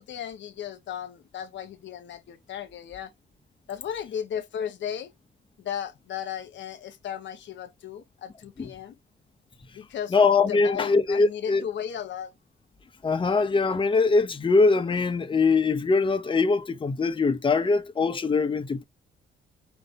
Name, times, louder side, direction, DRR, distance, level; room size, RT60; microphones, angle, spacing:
voice 1, 0.0-3.1 3.7-5.1 5.6-9.0 9.7-10.1 10.5-12.3, left 9 dB, 65° left, 1.1 m, -35 dB
voice 2, 10.1-11.6 13.0-18.8, left 4 dB, 25° left, 0.9 m, -22 dB
5.2 x 2.5 x 4.0 m
cardioid pair, 90°, 20 cm